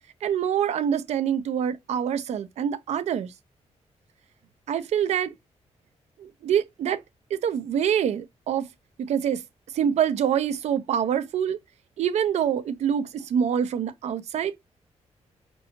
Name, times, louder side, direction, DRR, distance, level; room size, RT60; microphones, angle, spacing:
voice 1, 0.2-3.3 4.7-5.3 6.2-7.0 7.3-8.7 9.0-9.4 9.7-11.6 12.0-14.6, right 8 dB, 70° right, 0.6 m, -25 dB
5.3 x 2.7 x 2.8 m
wide cardioid pair, 180°, 12 cm